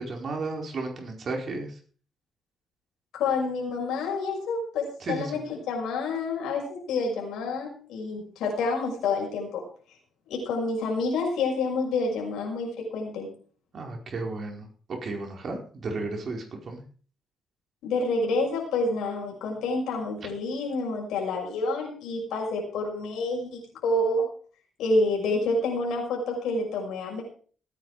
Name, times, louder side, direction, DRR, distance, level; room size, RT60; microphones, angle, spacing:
voice 1, 0.0-1.7 5.0-5.3 13.7-14.7 15.0-16.8, right 3 dB, 50° right, 2 dB, 4.7 m, -33 dB
voice 2, 3.1-9.6 10.3-13.3 17.8-24.2 24.8-27.2, left 3 dB, 85° left, -1 dB, 6.1 m, -28 dB
18.0 x 9.9 x 5.0 m, 0.44 s
cardioid pair, 90°, 0 cm